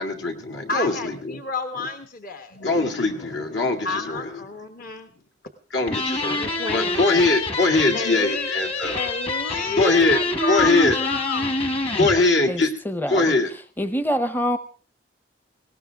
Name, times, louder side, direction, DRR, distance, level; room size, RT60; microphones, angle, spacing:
voice 1, 0.0-1.4 2.5-4.3 5.7-9.0 9.8-10.2 10.5-11.0 12.0-12.7 13.1-13.5, left 3 dB, 75° left, 4 dB, 2.2 m, -22 dB
voice 2, 0.7-2.6 3.8-5.1 6.2-7.3 7.9-8.5 9.0-11.7, left 4 dB, 50° left, 7 dB, 1.1 m, -30 dB
sound 1, 5.9-12.2, left 2 dB, 30° left, 1.3 m, -26 dB
voice 3, 12.5-13.3 13.8-14.6, equal, 10° left, 11 dB, 0.7 m, -25 dB
19.0 x 17.5 x 3.5 m, 0.38 s
head